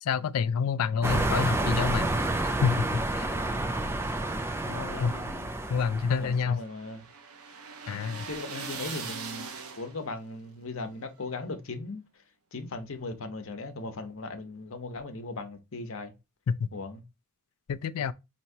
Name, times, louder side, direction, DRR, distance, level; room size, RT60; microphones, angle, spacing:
voice 1, 0.0-2.1 2.6-3.3 5.0-5.2 5.7-6.6 7.9-8.3 16.5-16.7 17.7-18.1, left 6 dB, 80° left, 0.4 m, -27 dB
sound 1, 1.0-6.4, right 2 dB, 10° right, 0.4 m, -29 dB
voice 2, 4.7-5.5 6.2-7.1 8.3-12.0 12.5-16.1 16.7-17.0, left 3 dB, 60° left, 0.8 m, -38 dB
sound 2, 4.9-10.2, right 5 dB, 80° right, 0.8 m, -42 dB
4.5 x 2.9 x 2.7 m
head